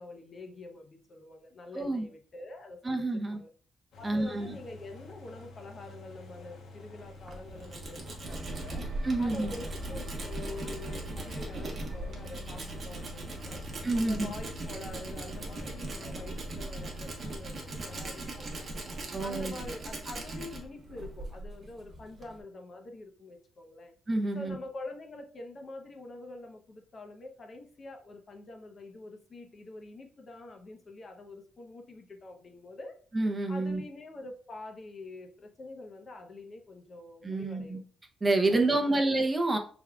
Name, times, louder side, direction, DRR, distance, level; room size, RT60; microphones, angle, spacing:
voice 1, 0.0-3.0 3.3-3.5 4.0-8.9 9.2-13.6 13.9-18.8 19.2-23.9 24.3-33.0 33.5-37.8 38.4-39.1, left 2 dB, 35° left, 4 dB, 0.7 m, -46 dB
voice 2, 1.7-2.1 2.8-3.4 4.0-4.5 9.0-9.5 13.8-14.3 19.1-19.5 24.1-24.6 33.1-33.8 37.2-37.8 38.2-39.6, right 2 dB, 20° right, 4 dB, 0.6 m, -28 dB
sound 1, 3.9-19.1, left 2 dB, 70° left, 1.0 m, -50 dB
Tools, 7.0-22.4, right 2 dB, 35° right, 1.0 m, -40 dB
sound 2, 8.2-17.0, equal, 60° right, 1.1 m, -44 dB
5.9 x 3.5 x 2.3 m, 0.44 s
cardioid pair, 140°, 0 cm